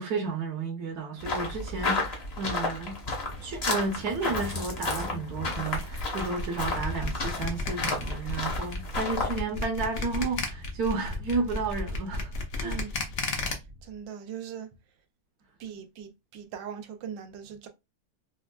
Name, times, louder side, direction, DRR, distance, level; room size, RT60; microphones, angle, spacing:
voice 1, 0.0-3.0 3.4-12.8, right 4 dB, 60° right, 1.2 m, -32 dB
sound 1, 1.2-9.4, left 3 dB, 45° left, 1.0 m, -33 dB
Thunder, 1.8-14.0, left 1 dB, 45° right, 0.4 m, -44 dB
sound 2, 5.5-13.5, left 3 dB, 65° left, 0.6 m, -33 dB
voice 2, 12.6-13.0 13.5-14.7 15.6-17.7, right 8 dB, 90° right, 1.3 m, -40 dB
4.2 x 2.2 x 2.2 m
omnidirectional pair, 2.0 m